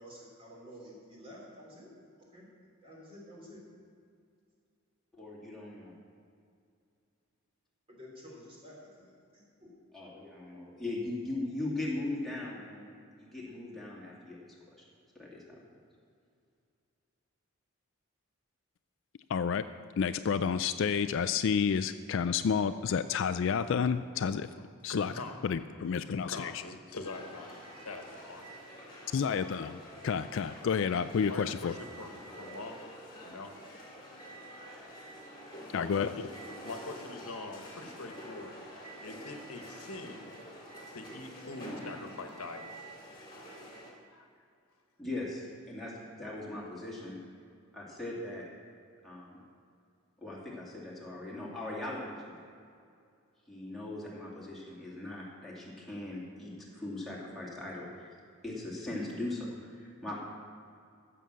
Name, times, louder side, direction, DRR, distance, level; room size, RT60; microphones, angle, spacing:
voice 1, 0.0-1.9 2.2-2.5 2.8-3.6 7.9-10.1, equal, 25° right, -4 dB, 3.5 m, -51 dB
voice 2, 5.1-5.9 9.9-12.9 13.2-14.4 15.1-15.6 45.0-47.2 47.7-48.5 49.0-49.4 50.2-52.4 53.5-58.1 58.4-60.2, left 2 dB, ahead, -6 dB, 2.7 m, -39 dB
voice 3, 19.3-19.6 20.0-24.5 24.8-25.1 25.4-26.5 29.1-31.7 35.7-36.1, left 6 dB, 60° left, 11 dB, 0.3 m, -30 dB
voice 4, 24.9-25.4 26.1-28.5 29.2-29.3 31.3-32.8 33.2-33.5 34.6-34.7 35.7-36.1 36.6-38.6 39.0-40.3 40.9-42.9 44.1-44.3 46.2-46.3, left 3 dB, 85° left, 5 dB, 1.2 m, -44 dB
sound 1, 27.0-43.9, equal, 20° left, 2.4 m, -47 dB
15.0 x 6.9 x 6.3 m, 2.3 s
head